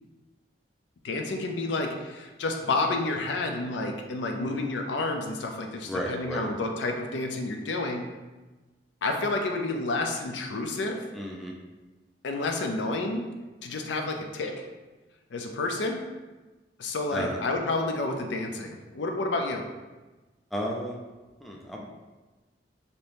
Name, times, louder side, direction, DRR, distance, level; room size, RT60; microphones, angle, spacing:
voice 1, 1.0-8.0 9.0-11.0 12.2-13.3 13.6-14.5 15.3-16.0 16.8-19.6, left 2 dB, 80° left, 3 dB, 0.4 m, -30 dB
voice 2, 5.8-6.5 11.1-11.5 17.1-17.4 20.5-21.0 21.4-21.9, equal, ahead, -2 dB, 0.3 m, -33 dB
2.8 x 2.6 x 3.4 m, 1.2 s
head